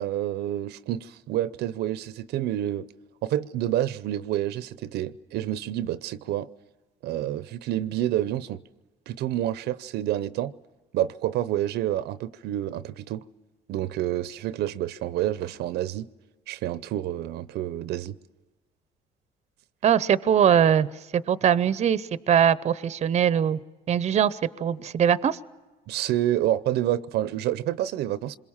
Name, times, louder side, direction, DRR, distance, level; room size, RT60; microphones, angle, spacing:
voice 1, 0.0-2.9 3.2-6.5 7.0-8.6 9.1-10.5 10.9-13.2 13.7-16.1 16.5-18.2 25.9-28.4, right 12 dB, 75° right, 0.7 m, -28 dB
voice 2, 19.8-20.9 21.1-23.6 23.9-25.4, right 9 dB, 40° right, 0.7 m, -21 dB
26.5 x 22.0 x 7.3 m
cardioid pair, 110°, 17 cm